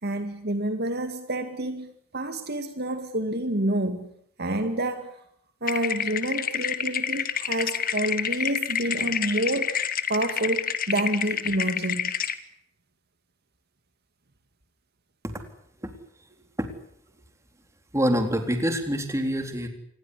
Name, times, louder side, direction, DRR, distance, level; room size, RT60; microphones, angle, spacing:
voice 1, 0.0-4.1 4.4-5.2 5.6-12.1, right 1 dB, 50° right, 9 dB, 2.2 m, -28 dB
sound 1, 5.7-12.4, left 8 dB, 40° left, 1.7 m, -29 dB
voice 2, 17.9-19.7, equal, 15° right, 6 dB, 3.8 m, -25 dB
27.5 x 20.5 x 8.4 m, 0.70 s
head